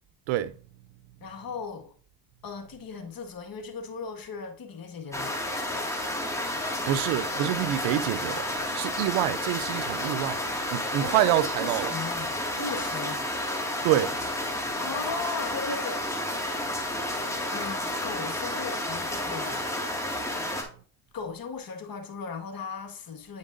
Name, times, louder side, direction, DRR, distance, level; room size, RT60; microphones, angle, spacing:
voice 1, 1.2-1.9 2.4-5.3 11.0-11.3 11.6-13.3 14.8-16.0 17.0-19.7 20.4-20.5 21.1-23.4, left 5 dB, 45° left, 1.8 m, -37 dB
sound 1, 5.1-20.6, left 1 dB, 5° left, 2.0 m, -31 dB
voice 2, 6.9-8.4 8.7-10.4 10.7-11.9 13.8-14.1, right 13 dB, 80° right, 0.6 m, -26 dB
9.4 x 5.3 x 2.6 m
supercardioid pair, 60°, 47 cm